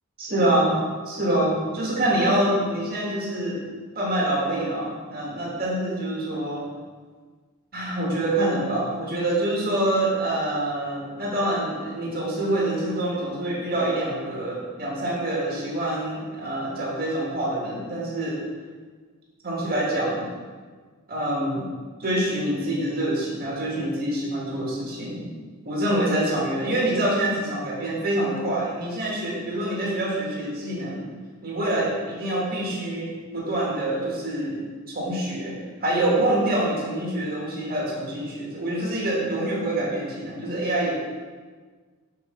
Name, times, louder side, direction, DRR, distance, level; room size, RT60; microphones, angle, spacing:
voice 1, 0.2-0.8 1.0-3.6 3.9-6.6 7.7-18.4 19.4-20.3 21.1-21.7 22.0-25.3 25.6-31.0 31.4-34.6 34.9-35.5 35.8-40.9, right 1 dB, 45° right, -5 dB, 1.6 m, -26 dB
5.6 x 5.4 x 3.8 m, 1.5 s
head